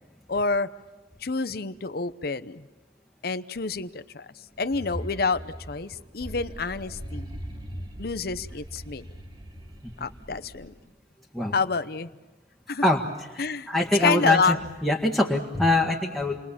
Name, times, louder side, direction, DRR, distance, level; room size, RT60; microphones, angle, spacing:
voice 1, 0.3-0.7 1.2-2.7 3.2-4.3 4.6-7.3 8.0-9.1 10.0-10.7 11.5-12.1 12.7-12.8 13.4-13.7 14.0-14.6, left 4 dB, 55° left, 13 dB, 0.8 m, -28 dB
sound 1, 4.5-10.9, equal, 30° right, 1.9 m, -40 dB
voice 2, 12.8-14.6 14.8-16.4, left 2 dB, 5° left, -3 dB, 1.7 m, -24 dB
29.5 x 22.0 x 7.3 m, 1.2 s
head